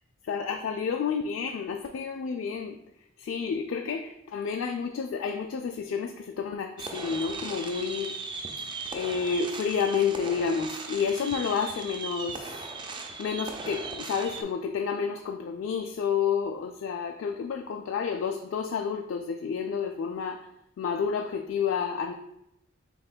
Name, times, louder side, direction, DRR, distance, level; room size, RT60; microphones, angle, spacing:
voice 1, 0.3-2.8 3.2-8.1 8.9-20.4 20.8-22.1, left 6 dB, 75° left, 3 dB, 0.3 m, -30 dB
sound 1, 6.8-14.4, right 4 dB, 25° right, 0.3 m, -38 dB
5.3 x 3.6 x 2.2 m, 0.84 s
head